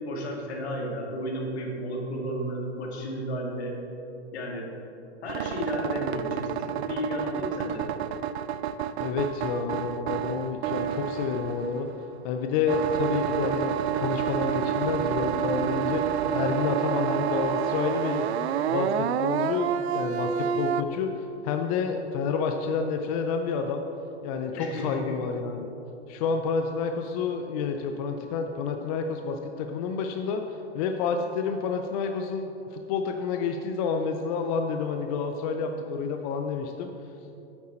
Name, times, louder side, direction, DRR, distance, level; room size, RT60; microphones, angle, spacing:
voice 1, 0.1-3.7 4.3-4.7 5.2-7.9 24.6-25.1, equal, 70° left, 0 dB, 2.1 m, -33 dB
sound 1, 5.3-12.2 12.7-20.8, right 9 dB, 70° right, 0.5 m, -29 dB
voice 2, 9.0-11.9 12.2-18.3 18.7-23.8 24.2-25.7 26.1-36.9, left 5 dB, 35° left, 5 dB, 0.5 m, -29 dB
8.8 x 8.1 x 4.3 m, 2.8 s
hypercardioid pair, 140°, 34 cm